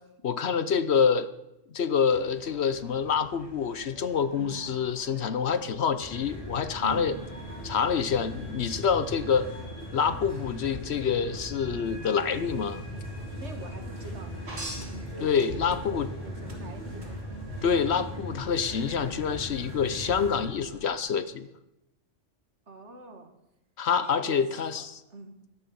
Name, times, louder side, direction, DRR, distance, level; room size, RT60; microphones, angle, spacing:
voice 1, 0.2-1.3 1.7-7.1 7.6-9.5 9.9-12.8 15.2-16.1 17.6-21.5 23.8-25.0, left 6 dB, 60° left, 13 dB, 1.0 m, -27 dB
sound 1, 2.1-21.0, right 1 dB, 20° right, 1.8 m, -52 dB
sound 2, 6.0-20.4, equal, 25° left, 7.6 m, -39 dB
voice 2, 13.4-14.5 15.8-17.2 22.7-23.3 24.0-25.3, right 3 dB, 65° right, 6 dB, 2.2 m, -44 dB
sound 3, 14.5-16.1 16.5-17.1 18.7-18.8, right 1 dB, 85° right, 3.8 m, -39 dB
15.5 x 11.5 x 6.9 m, 0.89 s
omnidirectional pair, 1.3 m